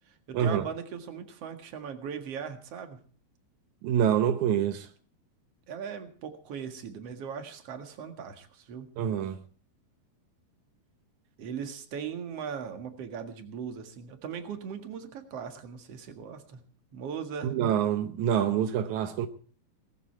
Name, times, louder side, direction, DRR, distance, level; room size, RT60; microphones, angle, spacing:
voice 1, 0.0-3.0 5.7-8.9 11.4-16.6 16.9-17.5, right 7 dB, 50° right, 2.2 m, -39 dB
voice 2, 3.8-4.8 9.0-9.4 17.4-19.3, right 9 dB, 80° right, 1.7 m, -26 dB
18.0 x 14.0 x 4.5 m
omnidirectional pair, 4.5 m